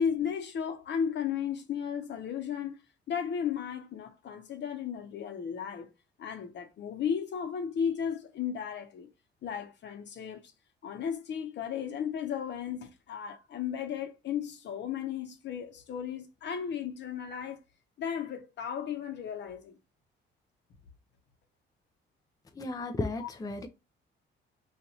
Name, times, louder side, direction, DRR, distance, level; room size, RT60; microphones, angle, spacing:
voice 1, 0.0-2.8 3.1-5.9 6.2-9.1 9.4-10.4 10.8-17.6 18.0-19.8 23.2-23.3, left 7 dB, 60° left, 0.9 m, -34 dB
voice 2, 22.6-23.7, left 2 dB, 20° left, 0.5 m, -34 dB
2.8 x 2.5 x 4.1 m
cardioid pair, 90°, 20 cm